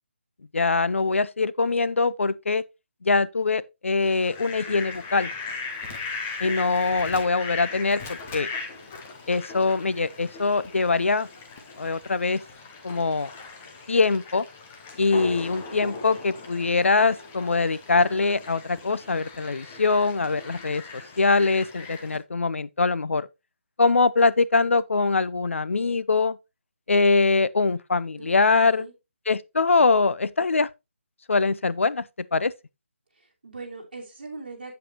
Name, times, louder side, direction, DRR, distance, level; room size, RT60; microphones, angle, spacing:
voice 1, 0.5-2.6 3.0-5.3 6.4-8.5 9.3-11.3 11.8-12.4 12.8-13.3 13.9-14.4 15.0-23.3 23.8-26.4 26.9-28.9 29.3-30.7 31.3-32.0 32.3-32.5, left 4 dB, 90° left, 0.6 m, -23 dB
Fowl, 4.0-22.2, left 4 dB, 5° left, 0.3 m, -38 dB
voice 2, 28.2-28.9 33.2-34.7, right 3 dB, 50° right, 3.1 m, -40 dB
8.1 x 7.6 x 2.9 m
hypercardioid pair, 180°, 7 cm